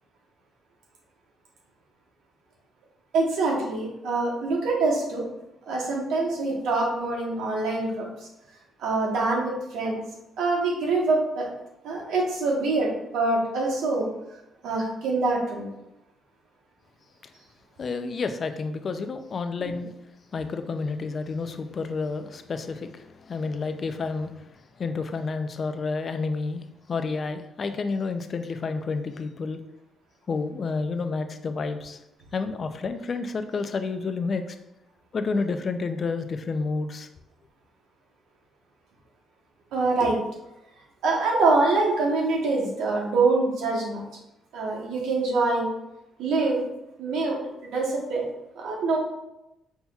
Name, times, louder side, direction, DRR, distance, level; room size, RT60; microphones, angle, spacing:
voice 1, 3.1-5.2 5.7-8.1 8.8-10.0 10.4-11.5 11.8-14.1 14.6-15.7 39.7-40.2 41.0-44.0 44.5-45.7 46.2-46.7 47.0-48.3 48.5-49.0, right 3 dB, 85° right, -2 dB, 1.0 m, -25 dB
voice 2, 17.8-19.9 20.3-24.5 24.8-29.6 30.3-32.0 32.3-34.6 35.1-37.1, left 4 dB, 45° left, 8 dB, 0.3 m, -30 dB
5.7 x 2.8 x 2.3 m, 0.89 s
cardioid pair, 90°, 0 cm